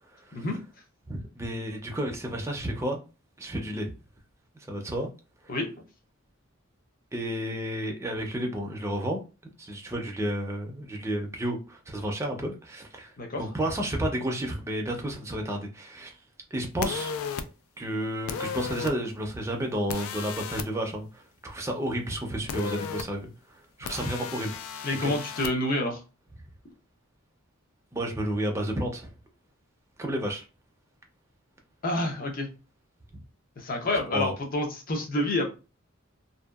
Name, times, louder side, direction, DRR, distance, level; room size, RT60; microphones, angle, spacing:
voice 1, 1.1-3.0 3.4-3.9 4.7-5.1 5.4-5.5 7.1-9.2 9.6-13.1 13.4-16.1 16.5-17.1 17.8-23.3 23.8-24.6 25.0-25.1 27.9-29.1 30.0-30.4 33.1-33.2 34.1-34.3, right 1 dB, 15° right, 0.5 m, -31 dB
sound 1, 16.8-17.4 18.3-18.9 19.9-20.7 22.5-23.0 23.9-25.5, left 6 dB, 85° left, 0.3 m, -34 dB
voice 2, 24.8-26.0 31.8-32.5 33.6-35.4, left 1 dB, 45° left, 0.7 m, -28 dB
2.7 x 2.2 x 2.3 m
head